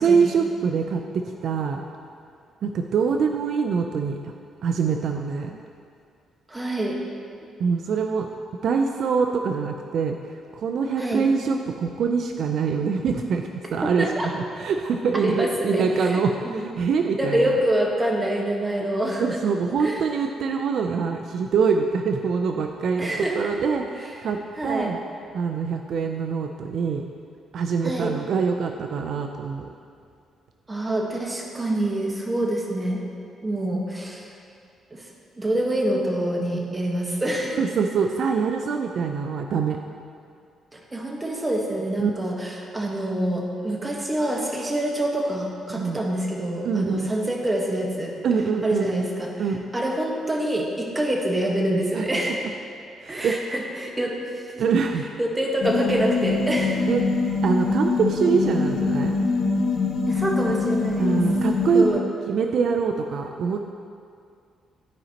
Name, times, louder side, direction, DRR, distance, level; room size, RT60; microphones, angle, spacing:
voice 1, 0.0-1.8 2.6-4.3 4.6-5.5 7.6-8.3 8.6-10.2 10.5-14.1 14.3-17.6 19.2-23.1 23.4-25.0 25.3-27.1 27.5-29.7 37.6-39.8 42.0-42.1 45.7-46.0 46.6-47.1 48.2-49.0 49.4-49.6 51.9-52.1 53.0-53.5 54.6-55.1 56.9-57.0 57.4-59.2 61.0-61.9 62.3-63.7, right 5 dB, 65° right, 4 dB, 0.4 m, -24 dB
voice 2, 6.5-7.0 11.0-11.3 13.8-14.3 15.1-16.6 17.2-19.4 19.8-20.0 23.0-23.5 24.6-24.9 27.8-28.1 30.7-33.0 33.4-34.3 34.9-35.1 35.4-37.6 40.7-48.1 48.6-49.5 49.7-52.5 53.1-54.4 55.2-56.8 60.1-61.2 61.7-62.0, right 1 dB, 20° right, -1 dB, 1.3 m, -26 dB
sound 1, 55.6-61.9, left 3 dB, 75° left, 1.6 m, -24 dB
12.5 x 5.0 x 2.9 m, 2.4 s
cardioid pair, 90°, 0 cm